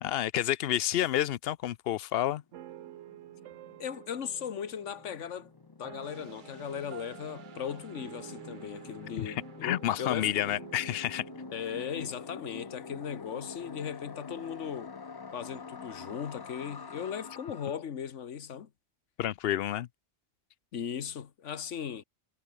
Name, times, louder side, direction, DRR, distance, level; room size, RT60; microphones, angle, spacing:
voice 1, 0.0-2.4 9.2-9.3 9.6-11.3 19.2-19.9, left 12 dB, 60° left, 0.7 m, -29 dB
sound 1, 2.5-17.8, left 5 dB, 40° left, 0.3 m, -47 dB
sound 2, 2.5-13.6, right 12 dB, 85° right, 1.0 m, -51 dB
voice 2, 3.8-5.5 5.8-10.5 11.5-14.9 15.3-18.7 20.7-22.0, left 8 dB, 80° left, 1.5 m, -38 dB
sound 3, 6.0-15.8, right 6 dB, 45° right, 1.1 m, -56 dB
omnidirectional pair, 1.2 m